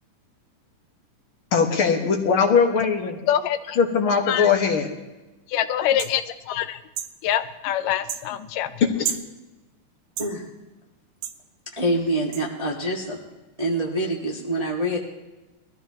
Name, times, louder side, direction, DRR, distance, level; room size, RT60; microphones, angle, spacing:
voice 1, 1.5-3.2 3.8-4.9 8.8-9.1, left 6 dB, 50° left, 3 dB, 2.0 m, -20 dB
voice 2, 3.3-3.8 4.3-4.5 5.5-6.8 7.2-8.7, left 11 dB, 85° left, 11 dB, 2.3 m, -25 dB
sound 1, 6.0-6.2 7.0-7.1 8.1-8.3 9.0-9.3 10.2-10.3 11.2-11.4 12.3-12.4, right 9 dB, 75° right, 2.2 m, -30 dB
voice 3, 11.7-13.2 13.6-15.0, right 1 dB, 15° right, -2 dB, 1.3 m, -25 dB
22.5 x 14.5 x 3.0 m, 1.1 s
omnidirectional pair, 3.7 m